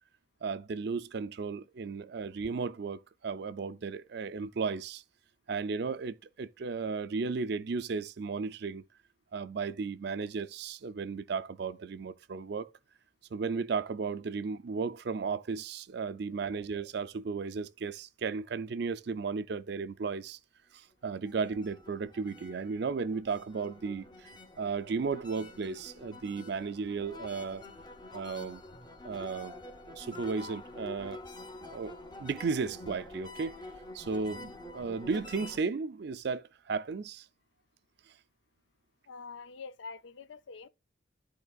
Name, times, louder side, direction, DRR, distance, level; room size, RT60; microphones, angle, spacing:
voice 1, 0.4-5.0 5.5-8.9 9.3-12.7 13.3-20.4 20.7-24.3 24.6-27.6 28.1-28.6 29.0-29.5 29.9-31.2 31.6-31.9 32.2-33.6 33.9-37.3, right 5 dB, 55° right, 0.4 m, -35 dB
sound 1, 21.2-35.6, left 2 dB, 20° left, 0.8 m, -47 dB
voice 2, 39.1-40.7, left 4 dB, 70° left, 0.4 m, -45 dB
12.5 x 4.3 x 2.3 m
head